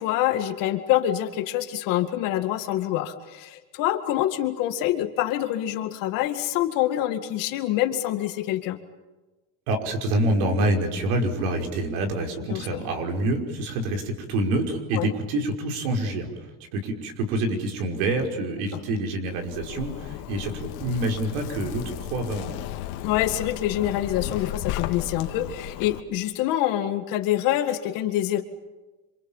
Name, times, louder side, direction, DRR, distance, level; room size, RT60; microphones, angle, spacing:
voice 1, 0.0-8.8 12.5-12.6 14.9-15.1 23.0-28.4, left 13 dB, 50° left, 7 dB, 2.1 m, -26 dB
voice 2, 9.7-22.6, right 1 dB, 75° right, 3 dB, 5.5 m, -27 dB
Zipper (clothing), 19.3-26.0, left 13 dB, 70° left, 2.1 m, -34 dB
27.5 x 27.0 x 7.3 m, 1.1 s
cardioid pair, 180°, 43 cm